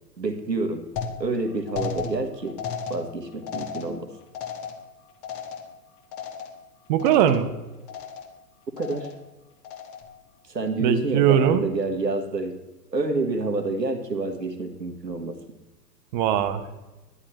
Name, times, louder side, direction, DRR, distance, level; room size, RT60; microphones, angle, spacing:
voice 1, 0.2-0.8 1.2-2.6 2.9-4.1 8.8-9.1 10.4-12.5 12.9-15.4, right 3 dB, 85° right, 4 dB, 1.5 m, -28 dB
sound 1, 1.0-6.7 7.0-7.6 7.9-8.4 8.8-9.3 9.6-10.2, left 6 dB, 25° left, 0.9 m, -36 dB
voice 2, 6.9-7.5 10.8-11.7 16.1-16.7, right 10 dB, 30° right, 9 dB, 0.7 m, -20 dB
11.5 x 9.7 x 3.1 m, 1.1 s
figure-of-eight pair, 105°, 49 cm